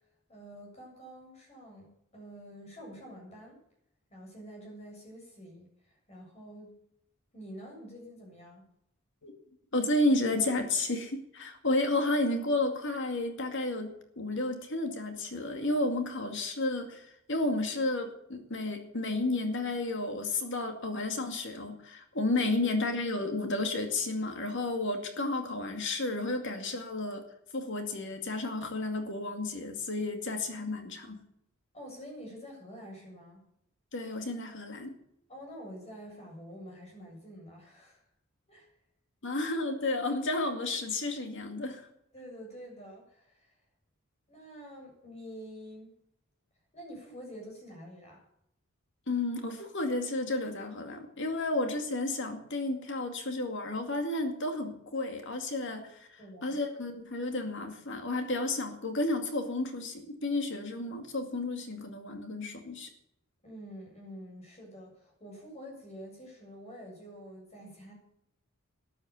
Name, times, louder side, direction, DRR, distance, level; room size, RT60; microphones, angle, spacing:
voice 1, 0.3-3.6 4.1-6.7 7.3-8.7 31.7-33.5 35.3-38.0 38.5-38.7 42.1-43.5 44.3-45.9 46.7-48.2 56.2-56.6 63.4-67.9, equal, 30° left, 0 dB, 7.5 m, -47 dB
voice 2, 9.7-27.2 27.5-31.2 33.9-35.0 39.2-41.9 49.1-55.9 56.4-62.9, left 2 dB, 65° left, 6 dB, 2.3 m, -32 dB
13.0 x 11.0 x 7.1 m, 0.74 s
head